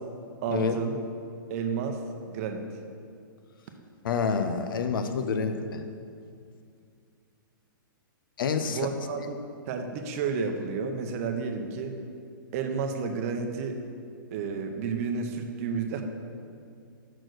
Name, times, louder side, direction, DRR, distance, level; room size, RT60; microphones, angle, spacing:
voice 1, 0.4-1.0 1.5-2.0 2.3-2.6 8.7-9.3 9.7-12.0 12.5-13.8 14.3-16.0, right 5 dB, 40° right, 5 dB, 0.7 m, -31 dB
voice 2, 4.0-5.8 8.4-8.9, left 5 dB, 75° left, 8 dB, 0.7 m, -28 dB
6.3 x 4.4 x 6.2 m, 2.3 s
hypercardioid pair, 145°, 12 cm